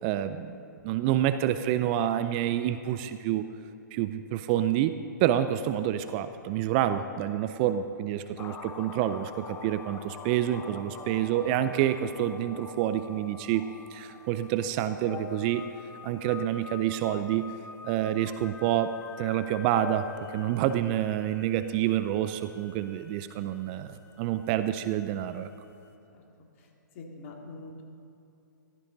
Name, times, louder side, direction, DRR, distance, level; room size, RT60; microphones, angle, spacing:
voice 1, 0.0-3.5 3.9-4.9 5.2-15.6 16.0-17.5 17.8-18.9 19.2-25.5, right 11 dB, 30° right, 11 dB, 0.5 m, -28 dB
sound 1, 8.4-25.5 25.8-25.9, left 5 dB, 20° left, 0.8 m, -45 dB
voice 2, 26.9-27.8, left 3 dB, 45° left, 1 dB, 2.3 m, -44 dB
15.5 x 14.0 x 3.9 m, 2.8 s
hypercardioid pair, 130°, 11 cm